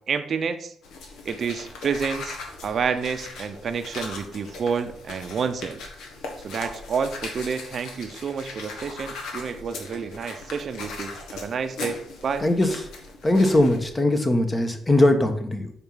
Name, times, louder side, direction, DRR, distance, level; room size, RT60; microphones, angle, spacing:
voice 1, 0.1-0.7 1.3-2.4 2.6-5.8 6.4-12.0 12.2-12.4, right 6 dB, 55° right, 9 dB, 0.6 m, -29 dB
sound 1, 0.8-13.9, left 3 dB, 80° left, 1.5 m, -39 dB
voice 2, 12.4-12.9 13.2-15.7, left 1 dB, 20° left, 6 dB, 1.2 m, -20 dB
5.8 x 4.5 x 5.6 m, 0.64 s
cardioid pair, 90°, 0 cm